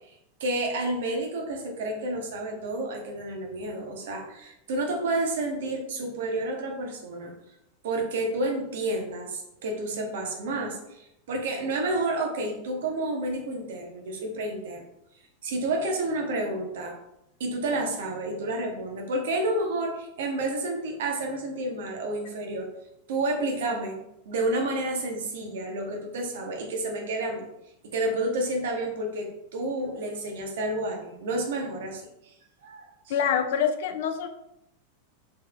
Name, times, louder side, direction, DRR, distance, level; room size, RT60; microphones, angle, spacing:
voice 1, 0.4-7.3 7.8-14.8 15.4-16.9 17.4-22.7 23.1-24.0 24.3-27.5 27.8-32.3 32.6-32.9, right 2 dB, 55° right, 2 dB, 0.7 m, -30 dB
voice 2, 33.1-34.3, left 8 dB, 55° left, 7 dB, 0.4 m, -25 dB
3.5 x 3.1 x 2.4 m, 0.84 s
figure-of-eight pair, 90°, 0 cm